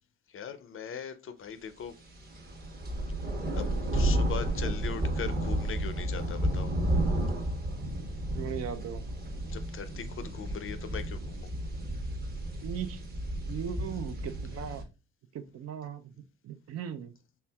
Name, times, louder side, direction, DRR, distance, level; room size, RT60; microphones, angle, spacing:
voice 1, 0.3-1.9 3.5-6.7 9.5-11.5, left 7 dB, 45° left, 0.5 m, -40 dB
sound 1, 2.1-14.8, right 1 dB, 30° right, 1.0 m, -32 dB
voice 2, 8.4-9.0 12.6-13.1 13.5-14.8 15.3-16.1 16.4-17.1, right 8 dB, 55° right, 0.5 m, -38 dB
4.3 x 3.3 x 2.3 m
cardioid pair, 90°, 30 cm